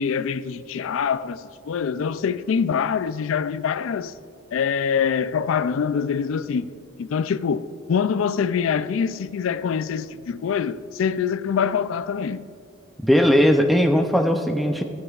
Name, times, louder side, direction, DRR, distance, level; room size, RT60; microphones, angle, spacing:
voice 1, 0.0-4.1 4.5-6.7 7.0-12.4, left 6 dB, 75° left, 0.3 m, -24 dB
voice 2, 13.0-14.8, equal, ahead, 0.5 m, -18 dB
16.0 x 14.0 x 2.4 m
head